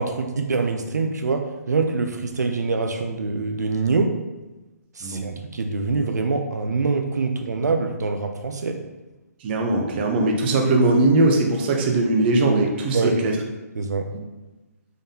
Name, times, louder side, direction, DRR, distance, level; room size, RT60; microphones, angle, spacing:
voice 1, 0.0-4.2 5.0-8.8 12.9-13.2 13.7-14.1, right 4 dB, 90° right, 5 dB, 0.4 m, -24 dB
voice 2, 5.0-5.4 9.4-13.3, right 2 dB, 35° right, 1 dB, 0.6 m, -20 dB
3.7 x 3.5 x 2.7 m, 1.1 s
hypercardioid pair, 145°, 9 cm